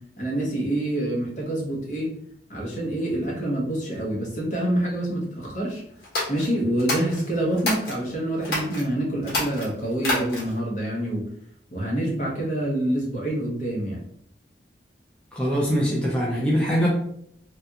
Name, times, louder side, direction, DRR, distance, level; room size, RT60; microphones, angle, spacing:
voice 1, 0.2-2.1 2.5-5.8 6.3-11.3 11.7-14.0, right 1 dB, 45° left, -3 dB, 1.0 m, -26 dB
sound 1, 6.0-8.0 8.4-8.8 9.2-10.6, left 1 dB, 60° left, 1.3 m, -28 dB
voice 2, 15.3-16.9, equal, 5° left, -5 dB, 0.5 m, -23 dB
3.3 x 2.4 x 2.8 m, 0.69 s
head